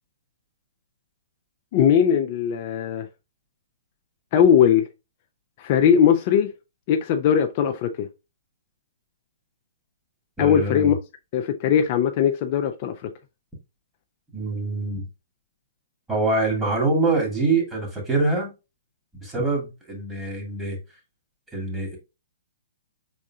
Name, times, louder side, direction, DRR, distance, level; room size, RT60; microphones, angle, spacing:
voice 1, 1.7-3.1 4.3-4.9 5.6-6.5 6.9-8.1 10.4-11.0 11.3-13.1, left 8 dB, 40° left, 0.5 m, -19 dB
voice 2, 10.4-10.9 14.3-15.1 16.1-18.5 19.2-20.8 21.5-22.0, right 3 dB, 10° right, 2.2 m, -24 dB
5.2 x 3.7 x 2.3 m
hypercardioid pair, 140°, 0 cm